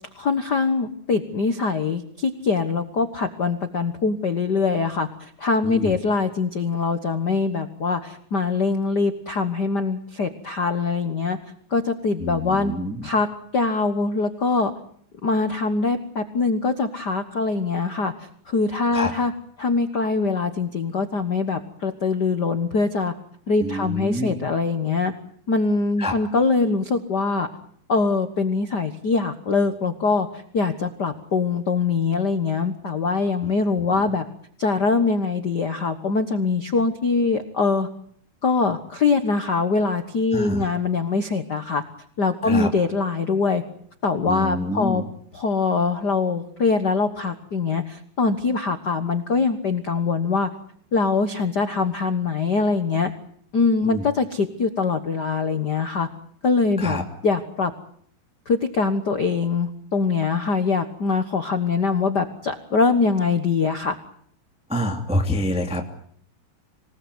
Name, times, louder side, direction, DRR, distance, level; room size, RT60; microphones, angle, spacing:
voice 1, 0.1-11.4 11.7-12.7 13.0-13.3 13.5-14.7 15.2-18.1 18.5-19.3 19.6-23.1 23.5-25.1 25.5-27.5 27.9-34.2 34.6-37.9 38.4-41.8 42.2-43.6 44.0-45.0 45.3-50.5 50.9-53.1 53.5-56.1 56.4-57.0 57.2-57.7 58.5-64.0, left 4 dB, 65° left, 9 dB, 1.0 m, -23 dB
voice 2, 5.6-6.0 12.2-13.1 18.9-19.1 23.6-24.4 26.0-26.1 40.3-40.7 42.4-42.7 44.3-45.1 53.8-54.1 56.8-57.0 64.7-65.9, left 1 dB, ahead, 2 dB, 2.1 m, -27 dB
27.0 x 19.0 x 9.5 m, 0.64 s
omnidirectional pair, 4.0 m